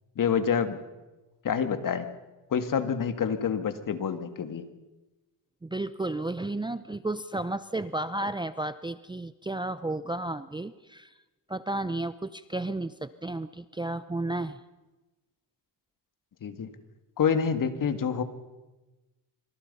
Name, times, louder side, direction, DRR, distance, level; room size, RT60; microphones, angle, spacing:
voice 1, 0.2-0.8 1.4-2.1 2.5-4.7 16.4-16.7 17.2-18.2, left 7 dB, 45° left, 9 dB, 2.3 m, -27 dB
voice 2, 5.6-11.1 11.5-14.6, right 2 dB, 10° right, 13 dB, 0.7 m, -33 dB
26.5 x 25.5 x 5.6 m, 1.1 s
cardioid pair, 90°, 44 cm